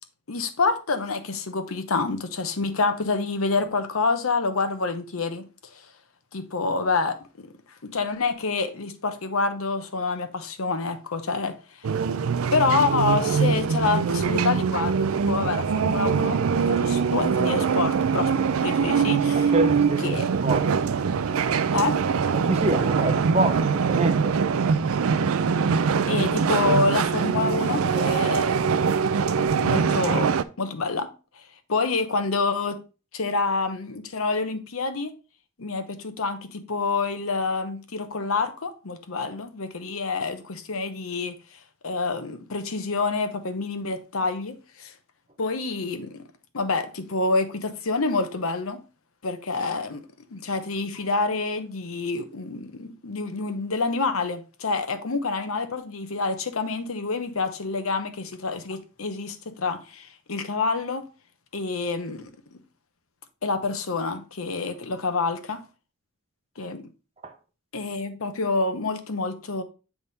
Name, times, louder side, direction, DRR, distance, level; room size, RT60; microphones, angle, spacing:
voice 1, 0.3-5.9 6.3-7.5 7.8-11.9 12.5-18.3 18.6-19.5 20.0-20.3 21.7-22.0 26.0-28.6 29.6-30.3 30.6-31.1 31.4-31.5 31.7-32.8 33.1-35.1 35.6-44.9 45.4-46.2 46.5-48.8 49.2-50.0 50.3-61.1 61.5-62.6 63.4-65.6 66.6-66.9 67.7-69.6, left 3 dB, 85° left, 0.9 m, -27 dB
sound 1, 11.8-30.4, right 6 dB, 85° right, 0.4 m, -23 dB
voice 2, 19.3-20.7 22.3-24.4 67.2-67.3, right 2 dB, 30° right, 0.7 m, -27 dB
8.0 x 3.7 x 4.1 m
head